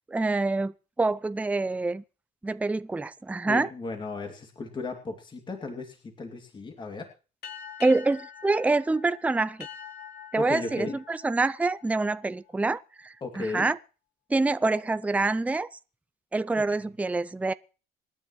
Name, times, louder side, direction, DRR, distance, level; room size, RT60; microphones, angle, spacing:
voice 1, 0.1-2.0 2.4-3.7 7.8-9.6 10.3-13.8 14.3-15.7 16.3-17.5, right 3 dB, 10° right, 0.6 m, -26 dB
voice 2, 3.5-7.1 10.4-10.9 13.2-13.7, left 3 dB, 30° left, 2.7 m, -35 dB
sound 1, 7.4-12.5, left 8 dB, 65° left, 3.2 m, -45 dB
27.0 x 10.0 x 3.2 m
cardioid pair, 110°, 17 cm